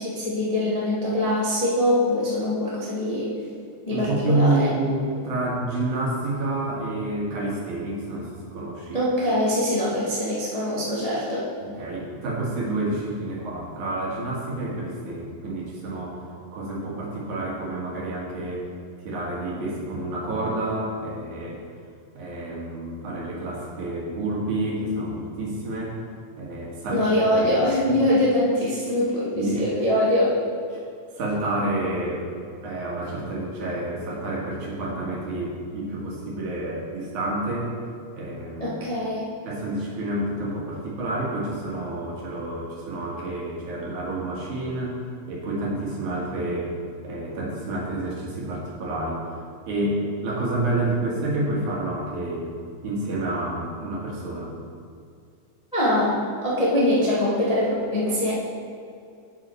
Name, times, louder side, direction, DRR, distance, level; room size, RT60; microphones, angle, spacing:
voice 1, 0.0-3.3 3.9-4.7 8.9-11.5 26.9-30.4 38.6-39.3 55.7-58.3, left 1 dB, 25° left, -7 dB, 0.7 m, -23 dB
voice 2, 3.9-9.0 11.6-16.2 16.5-18.7 19.0-21.6 22.1-26.0 26.4-27.6 27.9-28.0 28.9-29.0 29.3-29.6 30.7-30.8 31.2-32.3 32.6-37.7 38.1-38.8 39.4-45.0 45.3-46.7 47.0-49.2 49.7-52.5 52.8-54.5, right 2 dB, 80° right, -4 dB, 3.3 m, -29 dB
7.9 x 7.8 x 4.5 m, 2.3 s
omnidirectional pair, 3.4 m